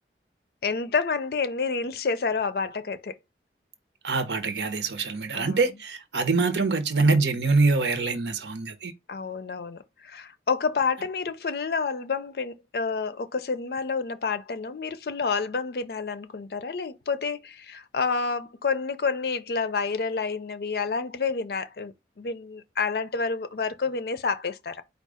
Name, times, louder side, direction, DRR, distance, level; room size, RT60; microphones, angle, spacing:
voice 1, 0.6-3.2 5.3-5.6 9.1-24.8, left 5 dB, 60° left, 0.4 m, -29 dB
voice 2, 4.0-8.9, right 3 dB, 80° right, 0.8 m, -24 dB
4.5 x 2.4 x 4.8 m
head